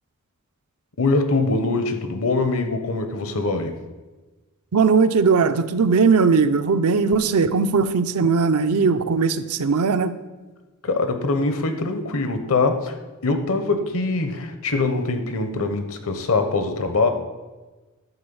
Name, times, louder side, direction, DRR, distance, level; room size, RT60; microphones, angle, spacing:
voice 1, 1.0-3.8 10.8-13.0 13.2-17.1, left 3 dB, 65° left, 7 dB, 1.0 m, -23 dB
voice 2, 4.7-10.1, right 5 dB, 75° right, 12 dB, 0.5 m, -19 dB
11.0 x 4.0 x 7.0 m, 1.2 s
head